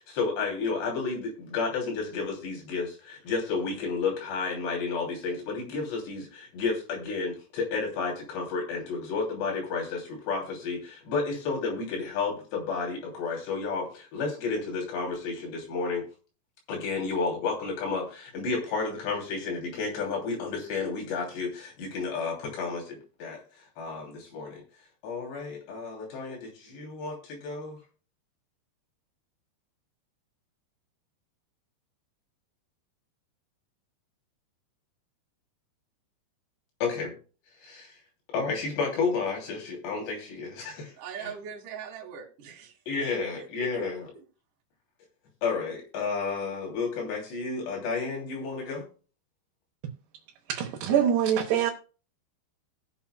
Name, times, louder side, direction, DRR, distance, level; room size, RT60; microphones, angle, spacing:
voice 1, 0.1-16.0 16.7-23.4 23.8-24.6 25.0-27.8 36.8-37.1 37.6-37.9 38.3-40.9 41.2-41.3 42.9-44.1 45.4-48.9, left 4 dB, 85° left, 5.2 m, -31 dB
voice 2, 40.9-42.8 43.4-43.9 44.2-44.3, right 7 dB, 55° right, 3.0 m, -41 dB
voice 3, 50.5-51.7, right 9 dB, 80° right, 3.2 m, -24 dB
19.5 x 7.2 x 2.3 m
omnidirectional pair, 4.8 m